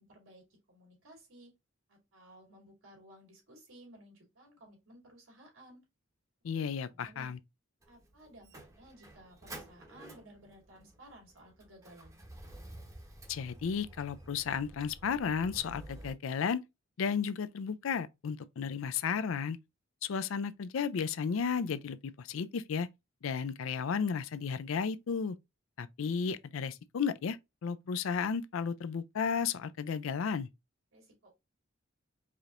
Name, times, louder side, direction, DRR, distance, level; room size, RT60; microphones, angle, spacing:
voice 1, 0.0-1.5 1.9-5.8 6.9-7.3 7.9-12.2 30.9-31.3, right 1 dB, 80° right, 2.6 m, -57 dB
voice 2, 6.4-7.4 13.3-16.6 17.0-19.6 20.0-22.9 23.2-25.4 25.8-27.4 27.6-30.5, left 6 dB, 75° left, 0.4 m, -33 dB
Motor vehicle (road), 7.8-16.1, right 1 dB, 15° right, 0.8 m, -51 dB
4.9 x 2.9 x 2.5 m
head